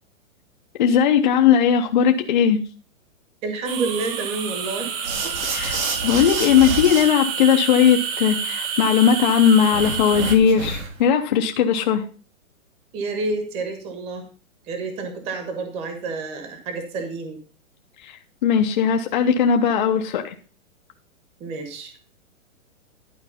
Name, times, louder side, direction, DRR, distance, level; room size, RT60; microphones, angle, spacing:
voice 1, 0.8-2.6 5.4-12.0 18.0-20.4, left 8 dB, 35° left, 4 dB, 0.7 m, -18 dB
voice 2, 3.4-4.9 12.9-14.3 14.7-17.4 21.4-21.9, right 3 dB, 15° right, 6 dB, 1.2 m, -29 dB
sound 1, 3.7-10.4, right 7 dB, 40° right, 1.6 m, -28 dB
sound 2, 5.0-7.0 9.7-11.1, right 3 dB, 80° right, 3.8 m, -29 dB
11.5 x 4.7 x 5.5 m, 0.37 s
hypercardioid pair, 165°, 41 cm